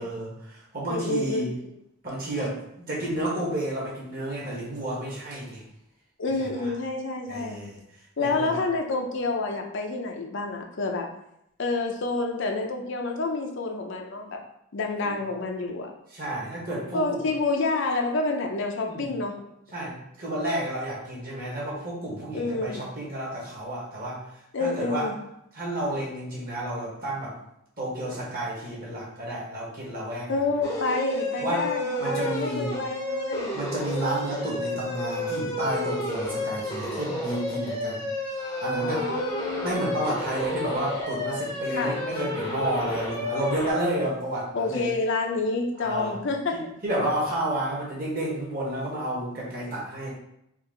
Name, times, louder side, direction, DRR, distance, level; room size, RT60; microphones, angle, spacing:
voice 1, 0.0-1.5 2.0-5.6 6.4-6.5 7.3-7.8 8.2-8.6 15.0-15.1 16.1-17.2 18.8-19.1 19.7-24.2 24.6-25.1 25.5-27.3 27.8-30.3 31.4-31.6 32.0-32.7 33.5-38.0 38.6-39.0 39.6-44.8 45.8-46.2 46.5-50.1, right 1 dB, 45° right, -5 dB, 1.5 m, -31 dB
voice 2, 0.9-1.4 6.2-7.6 8.2-11.1 11.6-14.4 14.7-15.9 16.9-19.5 22.3-22.8 24.5-25.2 30.3-33.6 38.8-39.9 41.7-41.9 44.5-46.6, left 3 dB, 60° left, 3 dB, 0.6 m, -28 dB
sound 1, 30.6-43.7, left 1 dB, 15° left, 0.7 m, -31 dB
4.6 x 2.5 x 3.8 m, 0.79 s
head